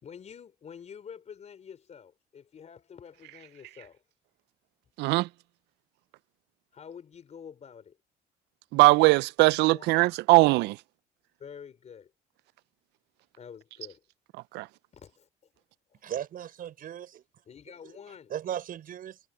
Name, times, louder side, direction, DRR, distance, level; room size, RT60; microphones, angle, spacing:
voice 1, 0.0-4.0 6.7-8.0 9.6-10.0 11.4-12.1 13.4-14.0 14.9-15.3 15.9-16.0 17.5-18.3, left 7 dB, 40° left, 4.3 m, -47 dB
voice 2, 5.0-5.3 8.7-10.8 14.5-14.7, right 22 dB, 85° right, 0.5 m, -20 dB
voice 3, 16.0-17.2 17.8-18.0 18.3-19.2, right 10 dB, 55° right, 6.5 m, -37 dB
cardioid pair, 110°, 17 cm